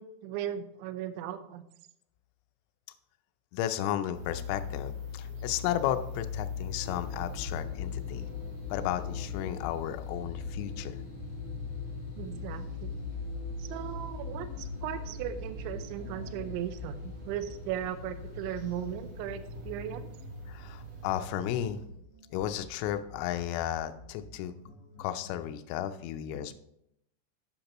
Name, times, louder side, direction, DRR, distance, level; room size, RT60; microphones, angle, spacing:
voice 1, 0.0-1.6 12.2-12.9 13.6-20.1, right 10 dB, 80° right, 10 dB, 2.9 m, -37 dB
voice 2, 3.5-8.3 8.7-11.0 20.5-21.8 22.3-24.5 25.0-26.6, left 11 dB, 85° left, 9 dB, 3.2 m, -33 dB
sound 1, 4.1-21.7, left 5 dB, 50° right, 3.6 m, -41 dB
sound 2, 6.8-20.0, left 2 dB, 70° left, 2.4 m, -44 dB
sound 3, 14.2-25.5, left 2 dB, 55° left, 1.6 m, -52 dB
11.5 x 8.7 x 3.0 m, 0.78 s
omnidirectional pair, 5.7 m